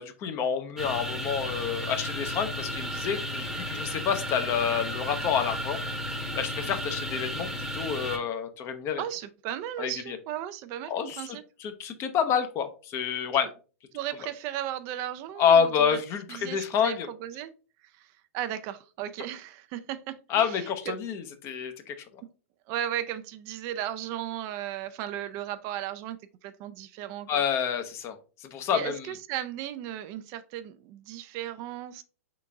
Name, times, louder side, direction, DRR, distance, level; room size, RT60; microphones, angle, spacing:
voice 1, 0.0-5.8 6.4-9.0 9.8-10.2 10.9-13.5 15.4-17.1 20.3-22.0 27.3-29.1, left 7 dB, 35° left, 0.7 m, -28 dB
sound 1, 0.8-8.2, equal, 5° right, 0.9 m, -33 dB
voice 2, 9.0-11.4 13.3-13.5 13.9-16.0 16.3-17.5 17.8-21.0 22.7-27.4 28.7-32.0, right 11 dB, 45° right, 0.4 m, -36 dB
3.9 x 3.6 x 3.5 m
hypercardioid pair, 105°, 8 cm